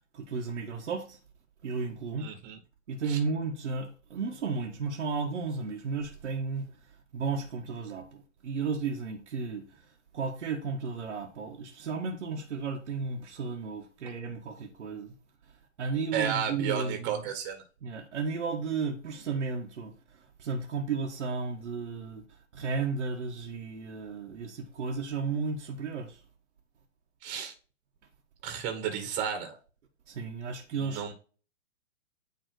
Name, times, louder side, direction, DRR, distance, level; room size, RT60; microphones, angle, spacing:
voice 1, 0.1-1.2 1.6-2.3 2.9-6.8 7.1-9.9 10.1-15.1 15.8-17.2 17.8-26.2 30.1-31.0, right 4 dB, 70° right, 1.5 m, -34 dB
voice 2, 2.2-2.6 3.1-3.2 16.1-17.6 27.2-27.5 28.4-29.6 30.7-31.1, right 8 dB, 25° right, 1.7 m, -33 dB
9.6 x 3.3 x 4.8 m
hypercardioid pair, 130°, 38 cm